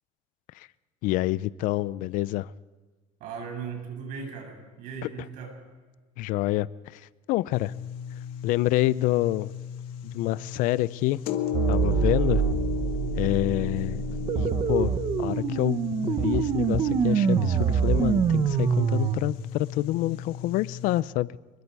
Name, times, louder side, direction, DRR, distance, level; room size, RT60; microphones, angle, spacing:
voice 1, 1.0-2.5 6.2-7.7 8.4-9.5 10.0-11.2 11.7-12.4 13.2-14.0 14.3-21.3, left 17 dB, 65° left, 18 dB, 0.6 m, -27 dB
voice 2, 3.2-5.6, right 6 dB, 65° right, 3 dB, 7.3 m, -37 dB
sound 1, 7.5-21.0, left 8 dB, 80° left, 2.1 m, -35 dB
sound 2, 11.5-19.2, right 7 dB, 35° right, 1.2 m, -25 dB
26.0 x 22.5 x 4.8 m, 1.3 s
cardioid pair, 165°, 15 cm